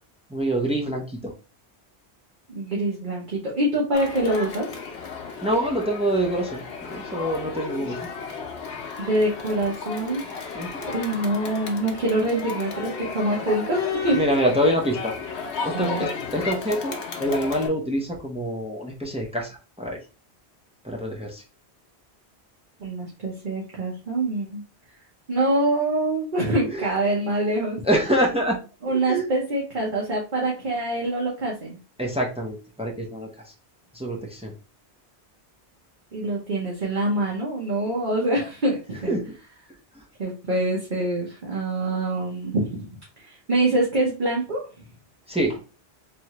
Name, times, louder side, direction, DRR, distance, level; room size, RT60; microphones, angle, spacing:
voice 1, 0.3-1.3 5.4-8.0 10.5-10.8 14.1-15.1 15.6-20.0 20.8-21.4 26.7-26.9 27.8-28.6 29.1-29.3 32.0-33.3 33.9-34.5 39.1-39.2 45.3-45.7, right 1 dB, 5° right, 0 dB, 0.7 m, -25 dB
voice 2, 2.5-4.7 9.0-10.2 10.8-14.2 15.7-16.0 22.8-24.6 25.3-27.8 28.8-31.8 36.1-39.2 40.2-42.9 43.2-44.6, right 1 dB, 50° right, -3 dB, 1.2 m, -25 dB
Crowd, 3.9-17.7, left 5 dB, 75° left, 1.0 m, -33 dB
3.5 x 3.2 x 3.0 m, 0.33 s
omnidirectional pair, 1.1 m